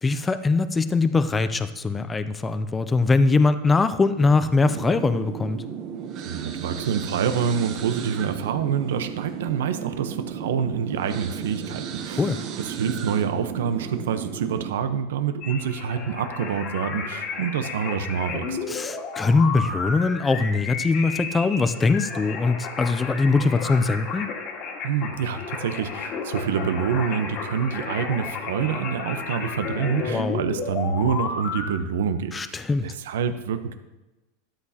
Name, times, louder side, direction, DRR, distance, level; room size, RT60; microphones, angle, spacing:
voice 1, 0.0-5.6 12.2-12.4 18.7-24.3 30.1-30.4 32.3-32.9, left 3 dB, 10° left, 11 dB, 0.4 m, -22 dB
sound 1, 4.7-14.7, right 7 dB, 35° right, 0.8 m, -34 dB
voice 2, 6.2-18.6 24.8-33.7, right 7 dB, 90° right, 9 dB, 0.9 m, -27 dB
sound 2, 15.4-31.7, left 5 dB, 35° left, 1.6 m, -32 dB
13.0 x 11.5 x 2.8 m, 1.1 s
supercardioid pair, 170°, 0 cm